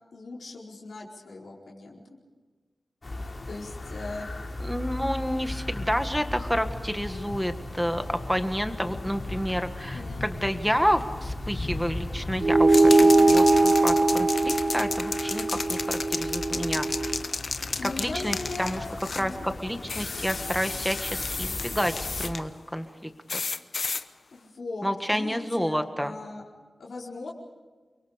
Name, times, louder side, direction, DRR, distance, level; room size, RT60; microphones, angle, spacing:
voice 1, 0.1-2.2 3.5-4.3 9.9-10.2 13.0-13.3 17.8-19.4 24.3-26.4 26.8-27.3, left 3 dB, 80° left, -4 dB, 4.6 m, -39 dB
sound 1, 3.0-22.3, left 2 dB, 35° left, 3.1 m, -37 dB
voice 2, 4.6-17.1 17.8-18.8 19.1-23.4 24.8-26.1, equal, ahead, 7 dB, 1.6 m, -29 dB
sound 2, 12.4-17.2, right 2 dB, 40° right, 1.1 m, -21 dB
sound 3, 12.7-19.3 19.9-22.4 23.3-24.0, left 4 dB, 55° left, 0.9 m, -33 dB
30.0 x 23.5 x 5.1 m, 1.4 s
wide cardioid pair, 130°, 0 cm